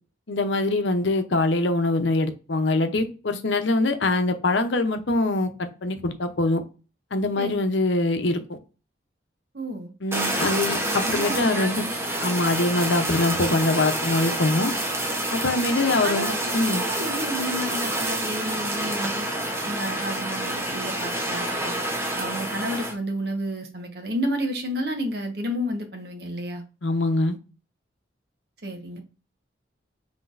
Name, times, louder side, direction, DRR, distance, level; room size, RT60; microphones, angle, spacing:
voice 1, 0.3-6.6 7.1-8.4 10.0-11.9 12.2-14.7 15.3-16.8 26.8-27.3, left 2 dB, 75° left, 0.8 m, -23 dB
voice 2, 9.5-9.9 10.7-11.7 12.2-12.3 15.7-19.3 19.6-21.8 22.2-26.6 28.6-29.0, equal, 60° right, 1.1 m, -31 dB
Fire, 10.1-22.9, right 1 dB, 15° right, 0.9 m, -28 dB
5.9 x 3.4 x 2.6 m
head